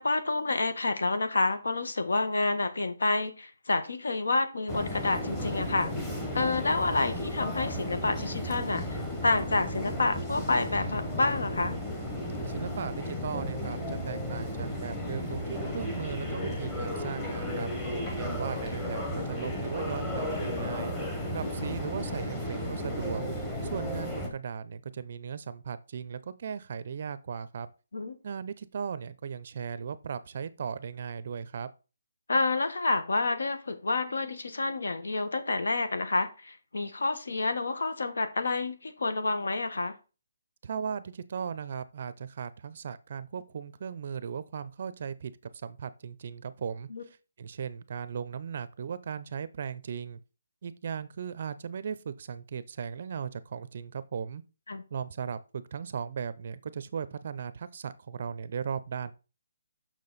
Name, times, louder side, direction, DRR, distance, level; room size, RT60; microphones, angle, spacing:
voice 1, 0.0-5.9 6.3-11.8 21.4-21.7 27.9-28.2 32.3-39.9 46.9-47.0 54.7-54.8, left 3 dB, 85° left, 1.4 m, -29 dB
sound 1, 4.7-24.3, left 1 dB, 10° left, 0.9 m, -34 dB
voice 2, 12.4-17.7 18.2-20.9 21.3-23.2 23.6-27.7 28.2-31.7 40.6-46.9 47.4-50.2 50.6-54.4 54.9-59.1, right 7 dB, 35° right, 0.5 m, -37 dB
6.7 x 6.0 x 4.1 m
hypercardioid pair, 180°, 0 cm